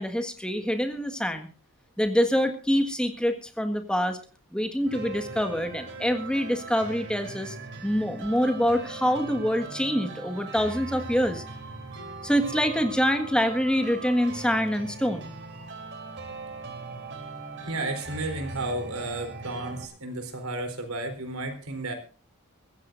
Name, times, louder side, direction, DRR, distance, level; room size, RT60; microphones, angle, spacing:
voice 1, 0.0-1.5 2.0-4.2 4.5-7.5 7.8-11.4 12.2-15.3, equal, 5° left, 6 dB, 1.6 m, -25 dB
sound 1, 4.9-19.8, right 3 dB, 55° right, 3.5 m, -40 dB
voice 2, 17.6-21.9, right 2 dB, 85° right, 6 dB, 3.9 m, -33 dB
23.5 x 15.5 x 2.6 m, 0.36 s
head